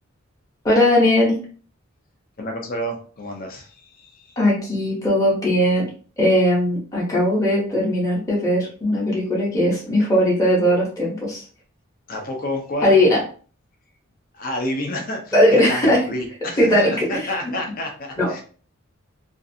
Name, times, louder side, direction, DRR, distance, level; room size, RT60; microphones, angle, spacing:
voice 1, 0.6-1.4 4.4-5.9 6.2-11.4 12.8-13.2 15.3-16.0 16.6-17.2 18.2-18.3, left 1 dB, 15° left, -6 dB, 0.8 m, -18 dB
voice 2, 2.4-4.4 12.1-13.0 14.3-18.4, left 1 dB, 45° left, 2 dB, 0.6 m, -29 dB
2.5 x 2.4 x 2.6 m, 0.41 s
head